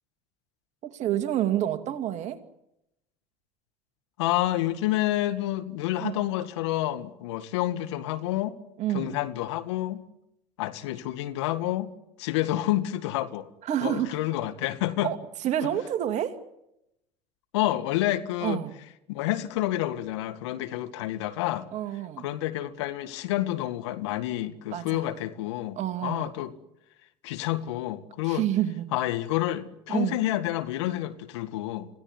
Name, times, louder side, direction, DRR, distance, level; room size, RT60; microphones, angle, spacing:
voice 1, 0.8-2.4 6.0-6.2 8.8-9.2 13.6-14.2 15.0-15.2 15.4-16.4 18.4-18.7 21.7-22.3 24.7-25.0 25.8-26.3 28.3-28.9 29.9-30.2, right 11 dB, 50° right, 8 dB, 2.4 m, -28 dB
voice 2, 4.2-8.5 8.9-10.0 10.6-11.9 12.2-13.5 13.8-15.1 15.6-15.7 17.5-18.6 19.1-21.7 22.2-26.5 27.2-28.5 28.9-31.9, left 15 dB, 75° left, 11 dB, 1.9 m, -29 dB
27.0 x 16.5 x 9.9 m, 0.84 s
hypercardioid pair, 75°, 15 cm